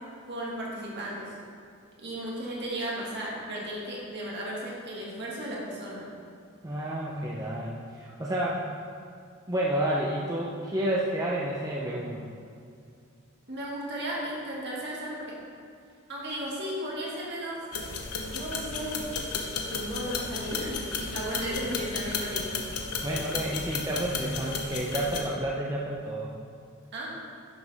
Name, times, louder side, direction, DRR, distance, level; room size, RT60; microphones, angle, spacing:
voice 1, 0.3-1.4 2.0-6.1 13.5-15.4 16.1-17.6 18.2-19.1 19.7-22.6 26.9-27.2, right 1 dB, 50° right, -4 dB, 2.1 m, -35 dB
voice 2, 6.6-8.7 9.5-12.2 23.0-26.3, right 1 dB, 15° right, -4 dB, 0.7 m, -30 dB
sound 1, 17.7-25.2, left 4 dB, 85° left, 1.0 m, -34 dB
10.5 x 6.7 x 3.5 m, 2.4 s
head